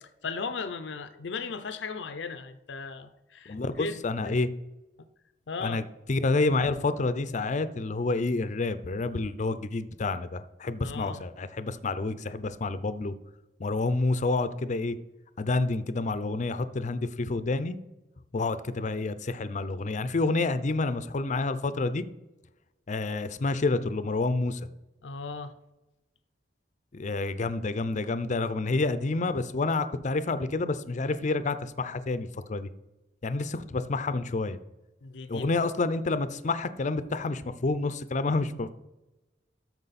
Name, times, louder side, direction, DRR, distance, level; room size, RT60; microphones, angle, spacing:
voice 1, 0.0-4.4 5.5-5.8 10.8-11.2 25.0-25.5 35.0-35.5, left 4 dB, 85° left, 10 dB, 0.6 m, -37 dB
voice 2, 3.5-4.5 5.6-5.8 6.1-13.1 13.6-15.0 15.4-17.8 18.3-22.0 22.9-24.6 26.9-32.7 33.2-34.6 35.3-38.7, left 3 dB, 45° left, 13 dB, 0.5 m, -28 dB
13.5 x 4.5 x 4.1 m, 1.0 s
head